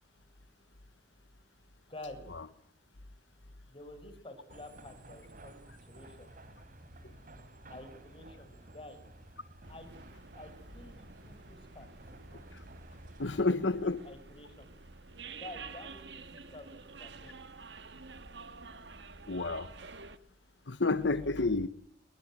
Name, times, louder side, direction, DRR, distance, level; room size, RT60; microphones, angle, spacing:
voice 1, 1.9-2.2 3.7-6.3 7.7-9.0 9.7-9.9 10.3-11.9 13.2-14.7 15.3-17.4 21.0-21.5, left 1 dB, 30° left, 9 dB, 6.7 m, -50 dB
sound 1, 4.5-13.4, right 1 dB, 50° right, 4.0 m, -53 dB
sound 2, 9.6-20.2, right 4 dB, 70° right, 1.9 m, -50 dB
voice 2, 13.2-14.0 19.3-19.7 20.7-21.7, left 3 dB, 85° left, 13 dB, 1.3 m, -30 dB
26.0 x 22.0 x 9.2 m, 0.69 s
head